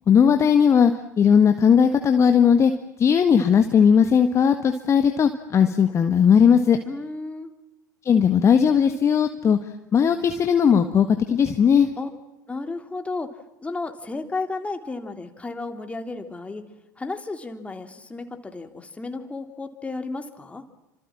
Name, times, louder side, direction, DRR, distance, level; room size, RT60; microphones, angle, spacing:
voice 1, 0.1-2.7 3.0-6.8 8.0-9.6 9.9-11.9, left 7 dB, 30° left, 8 dB, 1.7 m, -18 dB
voice 2, 6.8-7.5 12.0-12.1 12.5-13.3 13.6-16.6 17.0-20.6, left 3 dB, 15° left, 6 dB, 3.5 m, -33 dB
30.0 x 26.5 x 7.6 m, 0.97 s
figure-of-eight pair, 70°, 10 cm